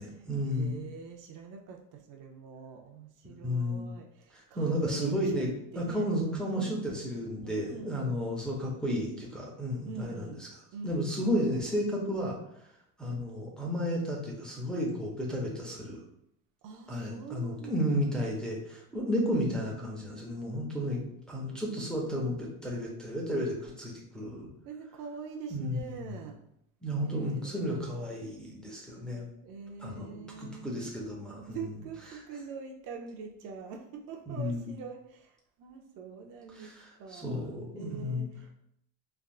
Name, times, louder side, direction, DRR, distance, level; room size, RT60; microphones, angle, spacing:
voice 1, 0.0-0.8 3.4-3.9 4.3-5.5 5.8-10.5 10.8-12.4 13.0-16.0 16.9-21.0 21.3-24.5 25.5-26.1 26.8-29.3 29.8-31.8 32.1-32.2 34.3-34.7 36.5-38.2, equal, ahead, -3 dB, 0.6 m, -33 dB
voice 2, 0.5-6.9 7.4-7.9 9.9-10.4 10.7-11.0 16.6-17.8 18.9-19.1 24.6-26.4 27.0-28.2 29.4-30.6 31.5-36.7 37.0-38.5, right 5 dB, 60° right, 2 dB, 0.6 m, -44 dB
3.4 x 2.4 x 2.3 m, 0.73 s
supercardioid pair, 115°, 36 cm